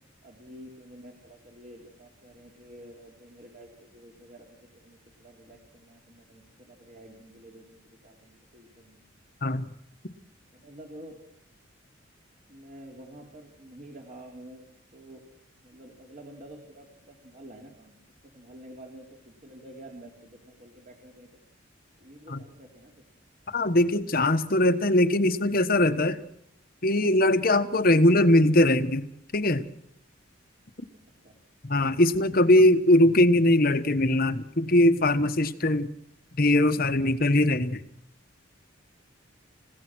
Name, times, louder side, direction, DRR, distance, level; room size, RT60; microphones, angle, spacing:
voice 1, 0.2-9.1 10.5-11.2 12.5-14.6 14.9-15.2 15.6-18.0 18.3-21.3 22.0-22.9 31.2-31.4, right 1 dB, 40° right, 1 dB, 3.4 m, -49 dB
voice 2, 23.5-26.2 26.8-29.1 29.3-29.6 31.6-35.9 36.4-37.8, left 1 dB, 45° left, 10 dB, 1.3 m, -21 dB
29.5 x 16.5 x 6.3 m, 0.75 s
head